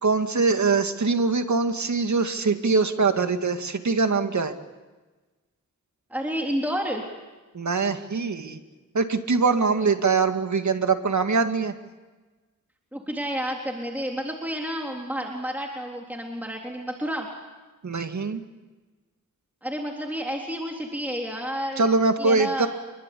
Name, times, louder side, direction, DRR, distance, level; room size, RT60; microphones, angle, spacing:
voice 1, 0.0-4.5 7.5-8.6 8.9-11.7 17.8-18.4 21.8-22.7, right 4 dB, 60° right, 7 dB, 2.2 m, -23 dB
voice 2, 6.1-7.0 12.9-17.3 19.6-21.8 22.2-22.7, equal, 5° right, 0 dB, 3.7 m, -30 dB
26.5 x 23.0 x 8.6 m, 1.2 s
cardioid pair, 70°, 33 cm